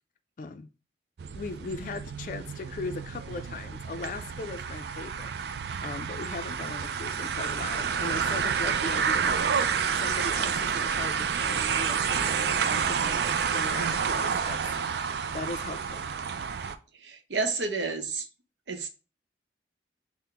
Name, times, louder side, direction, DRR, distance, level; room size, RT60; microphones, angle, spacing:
voice 1, 0.4-0.7 1.3-9.4 10.0-14.6 15.3-16.1 18.8-18.9, left 3 dB, 45° left, 0.3 m, -39 dB
sound 1, 1.2-16.7, right 6 dB, 70° right, 0.3 m, -29 dB
voice 2, 17.0-18.3 18.7-18.9, right 4 dB, 90° right, 0.7 m, -30 dB
5.7 x 2.1 x 3.4 m
head